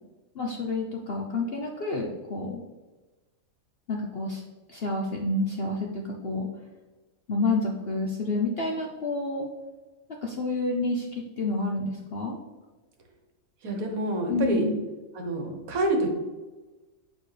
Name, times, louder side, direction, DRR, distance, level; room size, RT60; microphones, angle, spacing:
voice 1, 0.3-2.6 3.9-4.4 4.7-6.5 7.3-9.5 10.2-12.4 14.3-14.8, left 2 dB, 55° left, 0 dB, 0.7 m, -29 dB
voice 2, 13.6-14.7 15.1-16.1, right 2 dB, 65° right, 3 dB, 1.4 m, -27 dB
8.0 x 4.3 x 3.2 m, 1.2 s
omnidirectional pair, 1.7 m